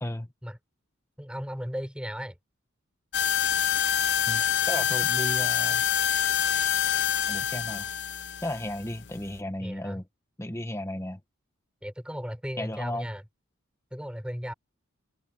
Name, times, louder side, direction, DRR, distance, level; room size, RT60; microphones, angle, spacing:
voice 1, 1.2-2.4 9.6-10.0 11.8-13.2 13.9-14.5, equal, 5° right, 4.0 m, -35 dB
sound 1, 3.1-9.4, left 9 dB, 55° left, 0.8 m, -26 dB
voice 2, 4.3-5.8 7.3-7.9 8.4-10.0 10.4-11.2 12.6-13.1, left 1 dB, 15° left, 1.1 m, -34 dB
head